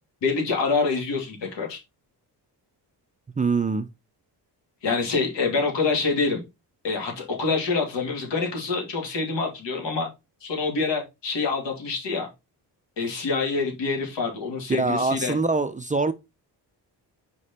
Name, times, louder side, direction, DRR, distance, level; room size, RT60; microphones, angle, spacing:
voice 1, 0.2-1.8 4.8-6.4 6.8-10.1 10.4-12.3 13.0-15.4, left 4 dB, 90° left, 2.6 m, -26 dB
voice 2, 3.4-3.9 14.7-16.1, right 3 dB, 20° right, 0.3 m, -24 dB
5.0 x 5.0 x 4.1 m
wide cardioid pair, 160°, 42 cm